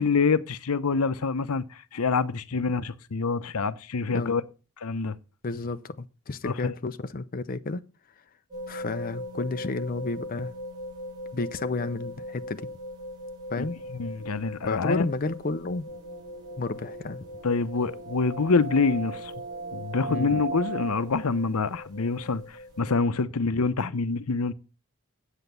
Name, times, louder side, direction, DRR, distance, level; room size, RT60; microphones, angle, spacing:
voice 1, 0.0-4.4 4.8-5.1 6.4-6.7 13.6-13.7 13.9-15.1 17.4-19.3 19.7-24.5, left 4 dB, 85° left, 0.7 m, -26 dB
voice 2, 4.1-4.4 5.4-7.8 8.7-10.5 11.3-12.7 13.5-13.8 14.6-15.9 16.6-17.2 20.1-20.4, left 3 dB, 40° left, 0.6 m, -31 dB
sound 1, 8.5-22.9, equal, 20° right, 4.6 m, -41 dB
sound 2, 15.9-21.1, right 4 dB, 55° right, 1.0 m, -38 dB
8.2 x 8.0 x 6.7 m
head